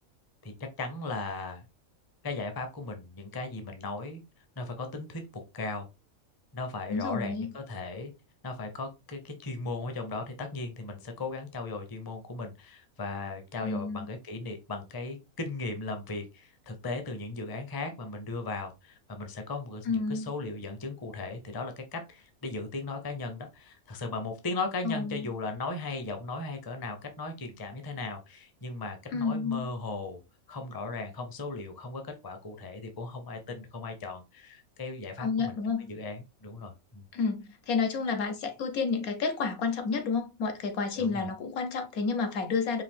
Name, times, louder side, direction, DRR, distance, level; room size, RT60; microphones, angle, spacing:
voice 1, 0.8-1.6 2.2-4.2 4.6-5.9 6.5-8.1 8.4-30.2 30.5-35.5 35.9-37.1 41.0-41.3, left 3 dB, 20° left, 0.6 m, -37 dB
voice 2, 6.9-7.5 13.6-14.1 19.9-20.3 24.8-25.3 29.1-29.7 35.2-35.9 37.1-42.8, left 5 dB, 80° left, 1.4 m, -30 dB
4.9 x 2.7 x 3.6 m
omnidirectional pair, 1.5 m